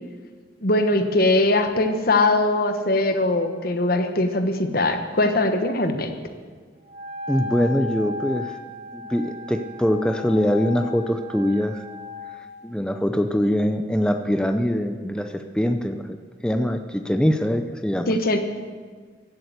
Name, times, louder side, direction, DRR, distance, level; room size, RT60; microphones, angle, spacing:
voice 1, 0.6-6.1 18.1-18.4, left 2 dB, 50° left, 7 dB, 1.2 m, -21 dB
Wind instrument woodwind instrument, 6.8-12.5, left 2 dB, 30° right, 1.7 m, -36 dB
voice 2, 7.3-8.6 8.9-11.8 12.6-16.2 16.4-18.1, equal, 5° left, 7 dB, 0.5 m, -23 dB
15.5 x 8.7 x 8.1 m, 1.5 s
head